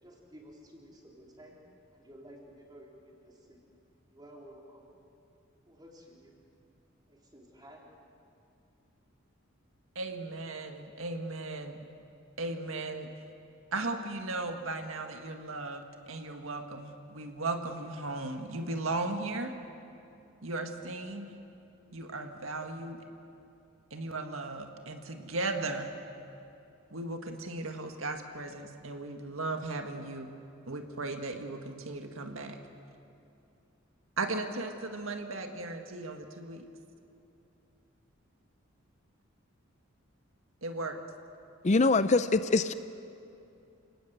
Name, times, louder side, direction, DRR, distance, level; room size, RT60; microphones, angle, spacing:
voice 1, 0.0-1.6 1.9-3.6 4.1-4.8 5.7-6.3 7.1-7.9, equal, 20° right, -2 dB, 4.2 m, -53 dB
voice 2, 10.0-11.8 12.4-13.1 13.7-19.5 20.4-21.4 21.9-23.1 23.9-25.9 26.9-30.3 30.7-32.6 34.2-36.6 40.6-41.0, right 2 dB, 85° right, 5 dB, 1.8 m, -36 dB
voice 3, 41.6-42.7, left 3 dB, 35° left, 12 dB, 0.5 m, -24 dB
28.0 x 19.0 x 8.0 m, 2.7 s
head